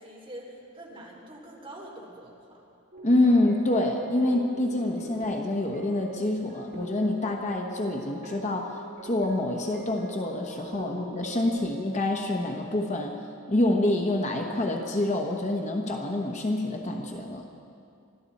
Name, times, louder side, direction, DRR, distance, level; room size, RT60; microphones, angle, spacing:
voice 1, 0.0-2.6, right 1 dB, 25° right, -3 dB, 3.3 m, -44 dB
sound 1, 2.9-11.6, equal, 45° right, 3.0 m, -44 dB
voice 2, 3.0-13.1 13.5-17.5, left 1 dB, 30° left, 2 dB, 1.0 m, -26 dB
25.0 x 13.5 x 4.2 m, 2.4 s
head